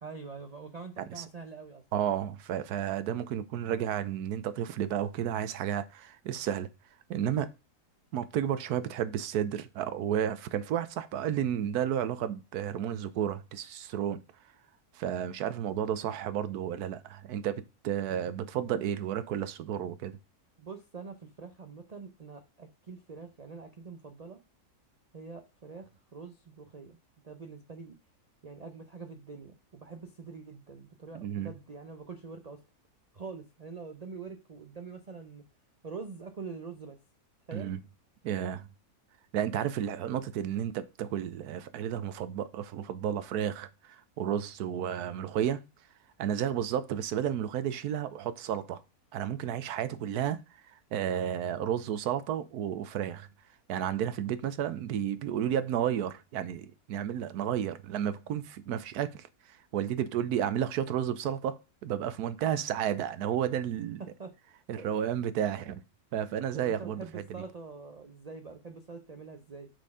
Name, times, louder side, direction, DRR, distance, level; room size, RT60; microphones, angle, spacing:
voice 1, 0.0-1.8 20.6-24.4 25.1-27.0 27.2-27.9 28.4-32.6 33.1-35.4 35.8-37.0 37.5-37.7 64.0-64.3 64.7-64.9 66.5-69.7, right 4 dB, 35° right, 0.6 m, -45 dB
voice 2, 1.9-6.7 7.1-7.5 8.1-14.2 14.9-20.2 31.1-31.5 37.5-37.8 38.2-38.7 39.3-45.6 46.2-48.8 49.1-50.4 50.9-53.3 53.7-64.0 64.7-65.8 66.1-67.2, right 9 dB, 90° right, 1.2 m, -32 dB
6.4 x 4.4 x 4.8 m
omnidirectional pair, 1.6 m